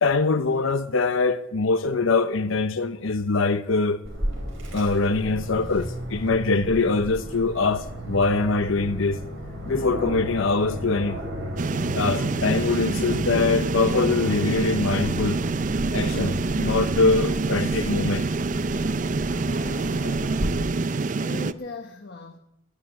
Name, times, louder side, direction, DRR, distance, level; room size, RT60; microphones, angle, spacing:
voice 1, 0.0-4.0 4.7-9.2 9.7-11.2 12.0-15.4 15.9-18.3, left 3 dB, 75° left, 0.7 m, -23 dB
Aircraft, 4.0-20.5, equal, 65° right, 4.3 m, -34 dB
sound 1, 11.6-21.5, right 3 dB, 40° right, 0.4 m, -26 dB
sound 2, 13.9-18.7, equal, ahead, 1.0 m, -44 dB
voice 2, 19.5-20.7 21.2-22.4, left 2 dB, 55° left, 1.0 m, -40 dB
11.5 x 11.5 x 9.0 m
head